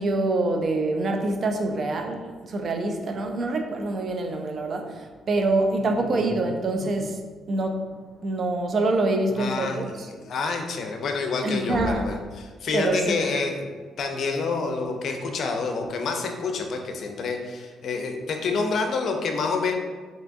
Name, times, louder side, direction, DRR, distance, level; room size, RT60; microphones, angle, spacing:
voice 1, 0.0-7.2 7.5-7.8 8.2-9.9 11.4-12.1 12.7-13.3, right 2 dB, 50° right, 4 dB, 0.4 m, -25 dB
voice 2, 9.3-13.6 14.0-19.7, left 4 dB, 65° left, 3 dB, 0.4 m, -28 dB
3.4 x 2.7 x 2.6 m, 1.5 s
cardioid pair, 90°, 0 cm